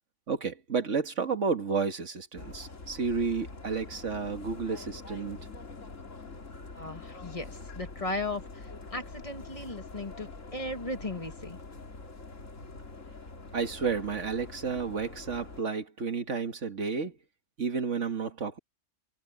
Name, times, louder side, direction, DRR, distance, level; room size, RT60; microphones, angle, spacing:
voice 1, 0.3-5.4 13.5-17.1 17.6-18.6, right 5 dB, 75° right, 2.0 m, -31 dB
sound 1, 2.4-15.6, left 3 dB, 85° left, 3.0 m, -45 dB
voice 2, 6.7-11.6, left 2 dB, 25° left, 1.8 m, -37 dB
omnidirectional pair, 1.3 m